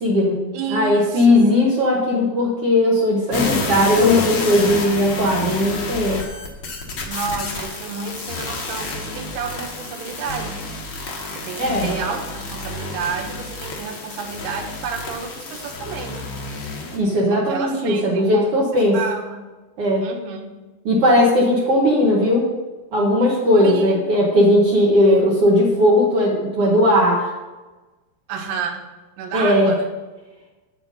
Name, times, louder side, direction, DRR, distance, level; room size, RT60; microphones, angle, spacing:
voice 1, 0.0-0.4 0.7-6.2 11.6-11.9 16.9-19.0 19.8-20.1 20.8-22.5 22.9-27.3 29.3-29.7, left 1 dB, 65° right, -3 dB, 1.5 m, -17 dB
voice 2, 0.5-1.5 7.1-10.6 11.3-16.2 17.3-18.5 18.9-19.5 20.0-20.5 23.5-24.0 28.3-28.8 29.2-29.9, right 6 dB, 90° right, 3 dB, 3.1 m, -30 dB
sound 1, 3.3-17.0, left 3 dB, 85° left, 1.1 m, -30 dB
8.0 x 7.9 x 5.3 m, 1.2 s
omnidirectional pair, 4.5 m